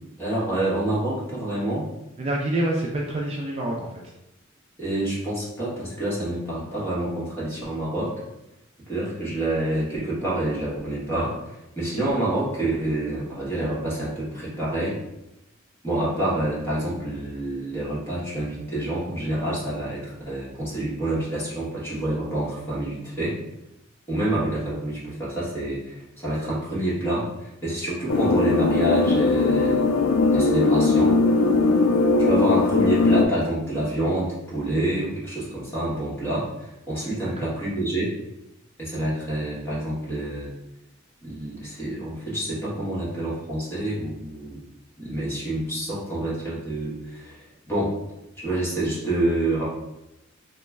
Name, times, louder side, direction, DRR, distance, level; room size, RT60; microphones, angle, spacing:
voice 1, 0.2-1.9 4.8-8.1 8.9-15.0 15.8-23.4 24.1-31.2 32.2-38.1 38.8-40.5 41.2-44.6 45.0-48.0 48.4-49.7, right 1 dB, 10° left, -8 dB, 1.2 m, -27 dB
voice 2, 2.2-4.0 37.2-37.5, right 1 dB, 30° right, -2 dB, 0.4 m, -27 dB
sound 1, 28.1-33.3, left 3 dB, 80° left, 0.3 m, -19 dB
3.0 x 2.1 x 3.5 m, 0.89 s
head